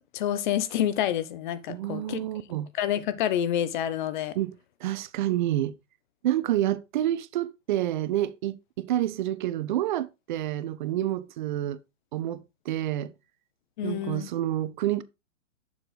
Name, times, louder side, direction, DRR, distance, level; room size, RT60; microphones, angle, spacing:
voice 1, 0.0-2.2 2.8-4.4 13.8-14.3, left 10 dB, 35° left, 0.9 m, -28 dB
voice 2, 1.7-2.7 4.4-4.6 4.8-5.8 6.2-11.8 12.1-13.1 13.8-15.0, right 13 dB, 40° right, 0.6 m, -28 dB
7.2 x 6.7 x 3.9 m
hypercardioid pair, 140°, 40 cm